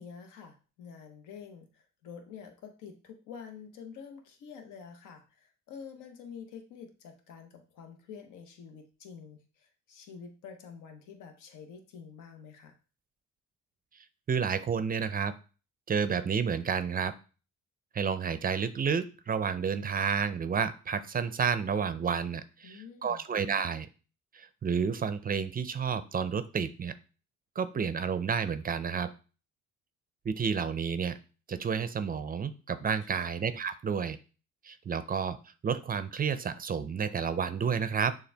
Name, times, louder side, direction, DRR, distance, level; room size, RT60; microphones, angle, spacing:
voice 1, 0.0-12.8 22.6-23.2 33.2-33.3, left 6 dB, 85° left, 5 dB, 0.9 m, -48 dB
voice 2, 14.3-15.3 15.9-17.1 17.9-23.9 24.3-26.9 27.6-29.1 30.3-31.2 31.5-34.2 34.6-35.4 35.6-38.1, right 6 dB, 30° right, 12 dB, 0.4 m, -30 dB
6.7 x 2.3 x 3.3 m, 0.35 s
cardioid pair, 90°, 30 cm